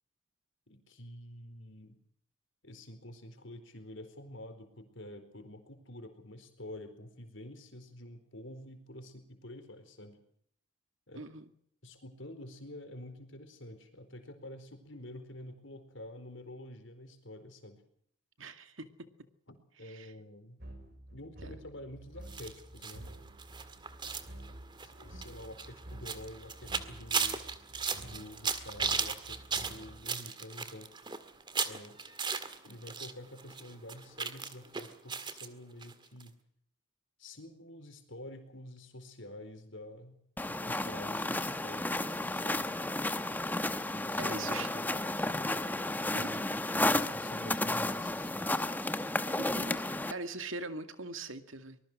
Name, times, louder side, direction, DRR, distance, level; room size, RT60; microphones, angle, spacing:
voice 1, 0.7-2.0 2.6-10.2 11.1-11.3 11.8-17.8 19.5-20.6 21.1-23.1 24.8-27.4 28.0-30.9 31.6-32.0 32.6-36.3 37.2-40.2 40.5-42.7 43.9-45.1 46.2-46.5 47.1-48.4, left 1 dB, 65° left, 8 dB, 4.4 m, -48 dB
voice 2, 11.1-11.5 18.4-19.1 19.8-20.1 44.2-44.7 46.1-46.3 49.4-51.8, right 3 dB, 75° right, 9 dB, 2.3 m, -42 dB
sound 1, 20.6-30.0, right 1 dB, 50° right, 5.8 m, -50 dB
sound 2, 22.3-33.1 33.4-35.5 35.8-35.9 36.2-36.3, right 5 dB, 20° right, 1.8 m, -36 dB
sound 3, 40.4-50.1, left 2 dB, 10° left, 1.0 m, -32 dB
24.5 x 20.5 x 6.3 m, 0.66 s
head